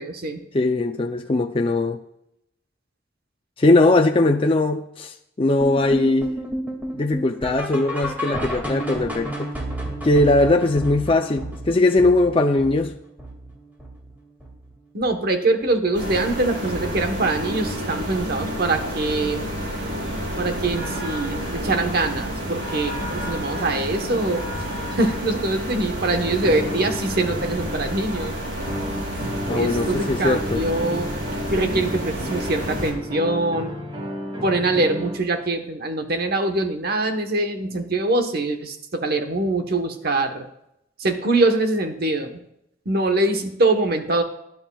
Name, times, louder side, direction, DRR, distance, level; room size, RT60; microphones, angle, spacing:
voice 1, 0.0-0.4 14.9-19.5 20.4-24.4 24.9-28.4 29.5-31.1 31.5-33.7 34.4-40.5 41.0-42.4 42.8-44.2, right 2 dB, 55° right, 1.1 m, -23 dB
voice 2, 0.5-2.0 3.6-6.3 6.9-9.5 10.0-12.9 29.5-30.6, left 2 dB, 30° left, 0.5 m, -20 dB
sound 1, 5.6-14.7 15.0-15.3 15.6-15.7 16.2-16.3 16.8-16.9, right 1 dB, 10° right, 2.2 m, -32 dB
sound 2, 15.9-32.9, equal, 80° right, 5.0 m, -30 dB
sound 3, 22.4-23.2 23.6-24.6 26.4-28.0 28.6-35.2, equal, 30° right, 2.6 m, -33 dB
19.5 x 10.5 x 2.3 m
head